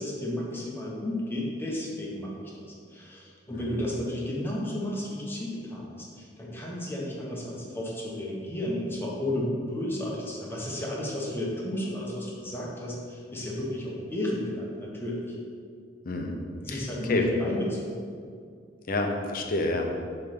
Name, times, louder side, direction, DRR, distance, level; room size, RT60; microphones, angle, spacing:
voice 1, 0.0-15.4 16.6-18.0, left 1 dB, 10° left, -4 dB, 1.3 m, -33 dB
voice 2, 16.0-16.4 16.7-17.3 18.9-19.9, left 2 dB, 50° left, 2 dB, 0.8 m, -29 dB
7.1 x 3.4 x 5.9 m, 2.3 s
head